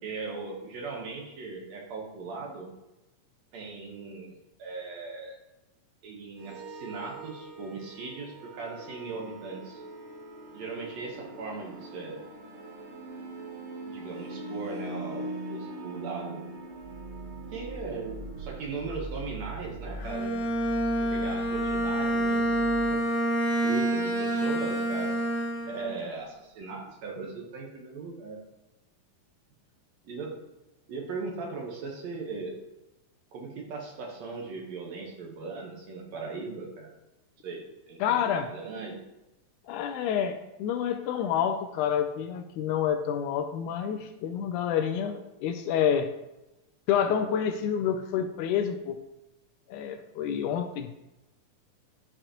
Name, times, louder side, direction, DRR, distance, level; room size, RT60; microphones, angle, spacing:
voice 1, 0.0-2.7 3.5-5.4 6.0-9.8 10.5-12.2 13.9-16.5 17.5-20.3 21.0-23.1 23.6-25.2 25.7-28.4 30.0-30.4 30.9-32.6 33.3-36.9 37.4-39.0, right 4 dB, 65° right, -1 dB, 2.2 m, -38 dB
sound 1, 6.4-22.9, right 2 dB, 90° right, 2.8 m, -41 dB
Bowed string instrument, 20.0-26.0, right 1 dB, 60° left, 1.7 m, -27 dB
voice 2, 38.0-38.5 39.7-46.1 46.9-49.0 49.7-50.9, left 8 dB, 80° left, 8 dB, 1.9 m, -28 dB
12.0 x 4.9 x 3.0 m, 0.96 s
omnidirectional pair, 3.7 m